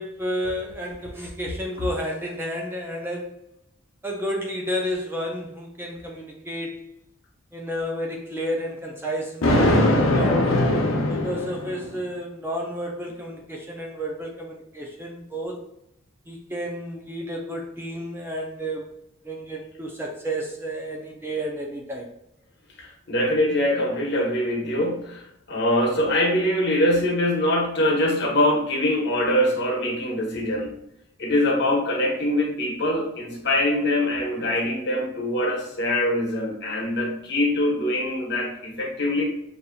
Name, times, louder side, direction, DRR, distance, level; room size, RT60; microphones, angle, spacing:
voice 1, 0.0-3.3 4.0-6.8 7.5-10.6 11.1-15.6 16.3-18.9 19.2-22.0, equal, 10° right, 0 dB, 0.5 m, -31 dB
Thunder, 9.4-11.9, left 1 dB, 80° left, 0.7 m, -21 dB
voice 2, 22.8-25.2 25.5-30.7 31.2-39.3, left 1 dB, 55° left, -1 dB, 1.1 m, -23 dB
6.5 x 2.8 x 2.3 m, 0.79 s
head